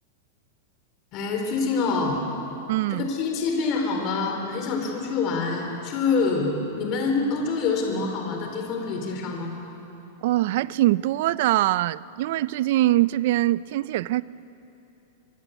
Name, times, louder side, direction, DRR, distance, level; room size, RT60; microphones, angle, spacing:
voice 1, 1.1-2.2 2.9-9.5, left 4 dB, 35° left, 2 dB, 4.1 m, -26 dB
voice 2, 2.7-3.1 10.2-14.2, right 16 dB, 55° right, 18 dB, 0.5 m, -23 dB
24.5 x 23.5 x 8.2 m, 2.9 s
supercardioid pair, 150°, 0 cm